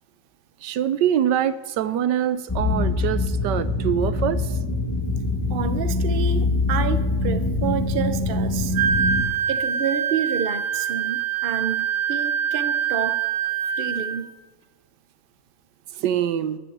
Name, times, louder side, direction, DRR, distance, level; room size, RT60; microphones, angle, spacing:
voice 1, 0.6-4.6 16.0-16.6, right 10 dB, 75° right, 14 dB, 1.3 m, -24 dB
sound 1, 2.5-9.2, left 2 dB, 15° left, 1.6 m, -24 dB
voice 2, 5.5-8.8 9.5-13.2 13.8-14.3, right 7 dB, 40° right, 11 dB, 0.8 m, -29 dB
Wind instrument woodwind instrument, 8.7-14.2, right 8 dB, 60° right, 1.5 m, -24 dB
14.0 x 9.8 x 8.7 m, 1.2 s
omnidirectional pair, 2.0 m